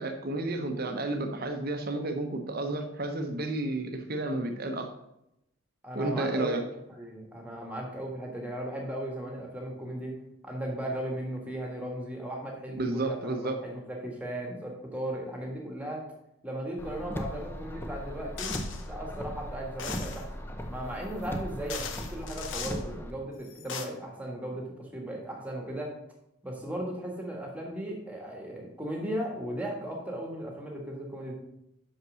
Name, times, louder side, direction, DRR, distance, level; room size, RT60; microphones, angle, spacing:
voice 1, 0.0-4.9 5.9-6.6 12.8-13.6, right 2 dB, 45° right, 5 dB, 0.9 m, -31 dB
voice 2, 5.8-6.5 7.0-10.2 10.4-16.0 16.4-18.5 18.9-20.3 20.7-25.9 26.4-31.3, right 1 dB, 5° right, 0 dB, 1.6 m, -36 dB
Car, 16.8-23.1, equal, 10° left, 0.6 m, -38 dB
sound 1, 18.4-18.8 19.8-20.2 21.2-21.3 21.7-22.8 23.4-23.8, left 6 dB, 55° left, 0.8 m, -38 dB
6.0 x 5.5 x 6.3 m, 0.83 s
head